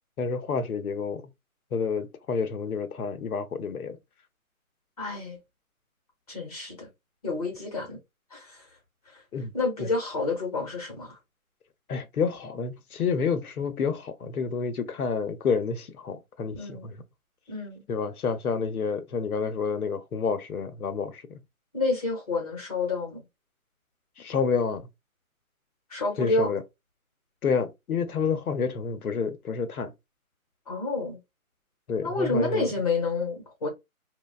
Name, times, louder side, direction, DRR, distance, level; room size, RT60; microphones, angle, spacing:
voice 1, 0.2-1.2 1.7-4.0 9.3-9.5 9.8-9.9 11.9-17.0 17.9-21.4 24.2-24.8 26.2-26.6 27.4-29.9 31.9-32.7, left 5 dB, 90° left, 0.7 m, -29 dB
voice 2, 5.0-5.4 6.3-6.9 7.2-8.0 8.3-8.6 9.1-9.2 9.5-11.2 16.5-16.9 17.5-17.8 21.7-23.2 25.9-26.5 30.7-31.2 32.0-33.7, left 3 dB, 25° left, 1.0 m, -29 dB
3.1 x 2.2 x 2.3 m
hypercardioid pair, 170°, 43 cm